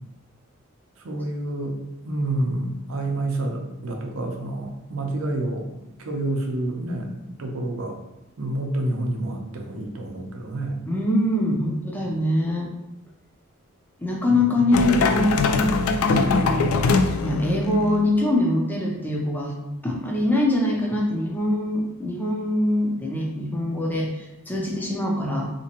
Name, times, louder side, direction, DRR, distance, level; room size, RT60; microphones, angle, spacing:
voice 1, 1.0-1.8 2.0-8.0 8.4-10.8 14.3-14.5, right 1 dB, 80° right, 2 dB, 0.6 m, -28 dB
voice 2, 10.9-12.7 14.0-16.8 17.2-19.6 19.8-25.5, left 1 dB, 10° left, -2 dB, 0.5 m, -23 dB
sound 1, 14.7-18.1, left 4 dB, 90° left, 0.3 m, -22 dB
3.4 x 2.9 x 2.8 m, 0.91 s
head